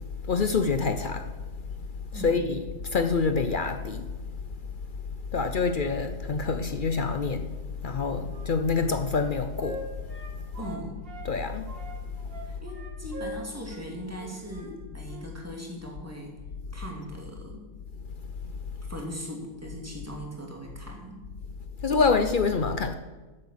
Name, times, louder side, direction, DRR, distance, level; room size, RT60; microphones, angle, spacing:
voice 1, 0.3-1.3 2.1-4.1 5.3-7.5 7.8-9.8 11.3-11.7 21.8-22.9, left 4 dB, 55° left, 0.6 m, -26 dB
voice 2, 2.1-2.5 10.6-11.0 12.4-16.4 16.7-17.7 18.8-21.3, equal, 10° right, 2.4 m, -39 dB
Wind instrument woodwind instrument, 7.9-11.3 11.7-14.7 15.0-15.3, right 2 dB, 40° right, 2.0 m, -43 dB
11.0 x 8.1 x 7.4 m
omnidirectional pair, 1.5 m